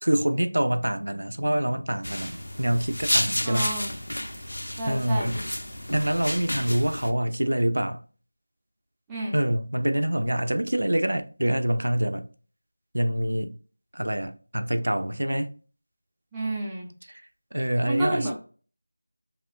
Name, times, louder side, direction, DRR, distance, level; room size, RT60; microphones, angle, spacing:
voice 1, 0.0-3.7 4.8-5.4 5.9-8.0 9.3-12.3 12.9-13.5 13.9-15.5 17.1-17.2 17.5-18.3, right 1 dB, 80° right, 0.3 m, -26 dB
sound 1, 2.0-7.1, left 1 dB, 75° left, 0.4 m, -31 dB
voice 2, 3.4-3.9 4.8-5.3 9.1-9.3 16.3-16.9 17.8-18.3, right 1 dB, 5° right, 0.3 m, -29 dB
2.9 x 2.0 x 2.3 m
figure-of-eight pair, 175°, 0 cm